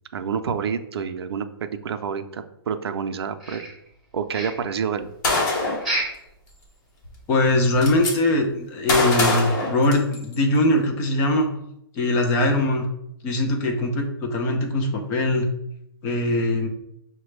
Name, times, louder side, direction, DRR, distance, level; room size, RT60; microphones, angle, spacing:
voice 1, 0.1-3.7 4.1-5.1, right 6 dB, 75° right, 8 dB, 0.5 m, -28 dB
sound 1, 3.4-4.0 4.3-4.8 5.8-6.3 6.6-6.7 7.2-7.3 7.8-7.9, right 1 dB, ahead, 1.3 m, -30 dB
Gunshot gunfire, 5.2-5.9 7.0-7.1 7.4-8.1 8.9-10.4, left 2 dB, 45° left, 1.2 m, -23 dB
voice 2, 7.3-11.5 12.0-12.9 13.2-15.5 16.0-16.7, left 1 dB, 15° left, 3 dB, 0.4 m, -21 dB
5.8 x 2.2 x 3.2 m, 0.79 s
hypercardioid pair, 160°, 13 cm